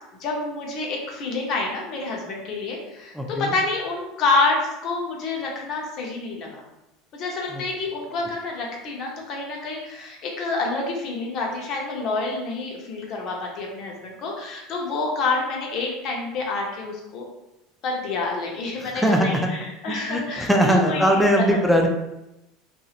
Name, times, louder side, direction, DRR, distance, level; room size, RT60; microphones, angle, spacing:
voice 1, 0.2-6.6 7.1-17.2 17.8-21.6, left 3 dB, 50° left, -1 dB, 0.8 m, -28 dB
voice 2, 3.1-3.5 7.5-7.6 18.9-19.5 20.1-21.9, equal, ahead, 1 dB, 0.4 m, -20 dB
2.9 x 2.6 x 2.4 m, 0.92 s
supercardioid pair, 120°, 0 cm